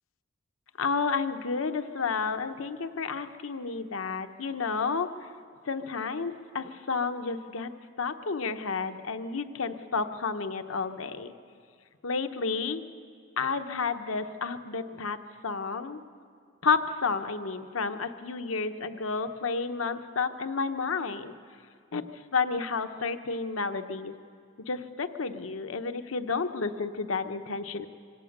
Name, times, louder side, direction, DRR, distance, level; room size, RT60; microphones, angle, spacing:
voice 1, 0.8-5.1 5.7-7.7 8.0-11.3 12.0-12.8 13.4-15.2 15.4-16.0 16.6-21.3 21.9-22.1 22.3-24.1 24.7-27.9, left 4 dB, 75° left, 9 dB, 0.9 m, -31 dB
24.5 x 17.5 x 6.6 m, 2.2 s
head